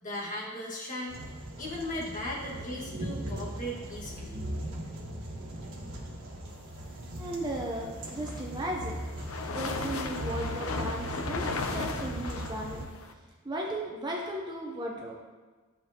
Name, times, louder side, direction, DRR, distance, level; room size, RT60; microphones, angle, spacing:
voice 1, 0.0-1.2 1.6-4.4, left 1 dB, 35° left, -4 dB, 1.8 m, -37 dB
sound 1, 1.1-12.9, right 1 dB, 65° right, 1.5 m, -39 dB
voice 2, 7.2-9.0 9.5-12.9 13.4-15.2, right 1 dB, 20° right, -1 dB, 0.8 m, -36 dB
sound 2, 8.0-13.1, left 3 dB, 70° left, 0.6 m, -36 dB
11.5 x 6.8 x 2.9 m, 1.4 s
head